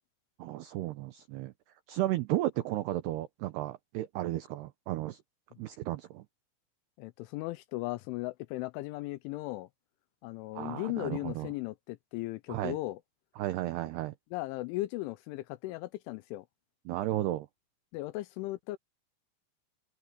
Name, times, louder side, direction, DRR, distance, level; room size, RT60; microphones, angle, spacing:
voice 1, 0.4-1.5 1.9-5.2 5.6-6.3 10.6-11.5 12.5-12.8 13.4-14.1 16.9-17.5, right 15 dB, 90° right, 2.3 m, -34 dB
voice 2, 7.0-9.7 10.2-13.0 14.3-16.5 17.9-18.8, left 19 dB, 85° left, 2.9 m, -37 dB
omnidirectional pair, 5.9 m